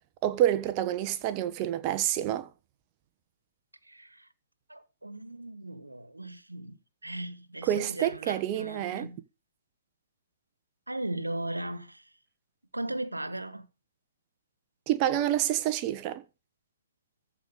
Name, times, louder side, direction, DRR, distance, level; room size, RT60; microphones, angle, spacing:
voice 1, 0.2-2.5 7.6-9.1 14.9-16.2, right 12 dB, 30° right, 1.2 m, -28 dB
voice 2, 3.8-4.3 4.7-9.2 10.9-12.1 12.7-13.7, right 1 dB, 90° right, 1.5 m, -37 dB
14.5 x 5.0 x 8.3 m
figure-of-eight pair, 130°, 0 cm